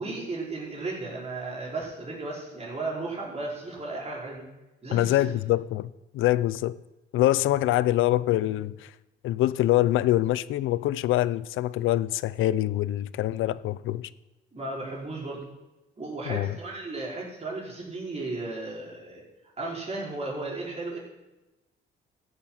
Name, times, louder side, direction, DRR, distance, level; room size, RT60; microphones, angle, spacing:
voice 1, 0.0-4.4 4.8-5.4 14.5-15.4 16.0-19.2 19.6-21.0, right 2 dB, 35° right, 5.0 m, -35 dB
voice 2, 4.9-6.8 7.1-8.9 9.2-14.1 16.3-16.5, left 14 dB, 85° left, 0.5 m, -25 dB
14.5 x 8.8 x 5.8 m
cardioid pair, 90°, 20 cm